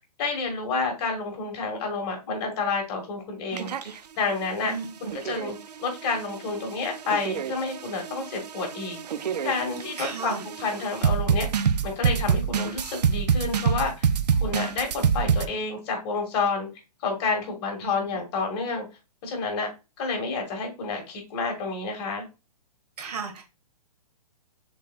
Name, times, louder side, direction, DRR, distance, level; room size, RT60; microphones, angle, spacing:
voice 1, 0.2-4.7 5.0-5.6 5.8-9.0 9.4-14.1 14.4-16.7 17.0-18.9 19.2-19.7 20.0-22.2, left 4 dB, 40° left, 2 dB, 1.8 m, -29 dB
sound 1, 3.5-4.0 4.8-15.5, right 7 dB, 90° right, 0.5 m, -27 dB
voice 2, 4.6-5.1 10.0-10.4 17.8-17.9 23.0-23.4, right 5 dB, 75° right, 4 dB, 1.6 m, -34 dB
6.2 x 3.7 x 2.3 m, 0.28 s
hypercardioid pair, 145°, 20 cm